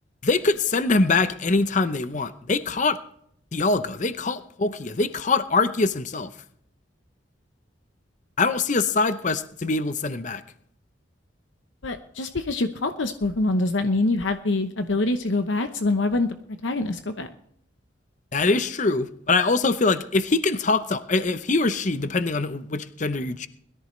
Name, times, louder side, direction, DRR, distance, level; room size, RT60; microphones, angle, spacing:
voice 1, 0.2-3.0 3.5-6.3 8.4-10.4 18.3-23.5, left 3 dB, 40° left, 12 dB, 0.7 m, -23 dB
voice 2, 11.8-16.4 16.6-17.3, left 2 dB, 80° left, 8 dB, 0.9 m, -25 dB
21.0 x 14.0 x 3.2 m, 0.68 s
head